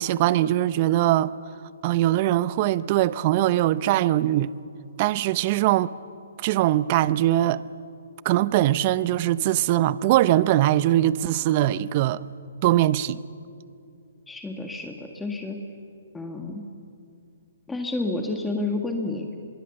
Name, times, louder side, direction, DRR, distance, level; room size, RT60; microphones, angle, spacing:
voice 1, 0.0-1.3 1.8-4.5 5.0-5.9 6.4-7.6 8.2-12.2 12.6-13.2, right 14 dB, 40° right, 0.7 m, -21 dB
voice 2, 14.3-15.6 16.1-16.6 17.7-19.3, left 2 dB, 5° left, 1.8 m, -30 dB
25.5 x 22.0 x 7.0 m
hypercardioid pair, 135°, 0 cm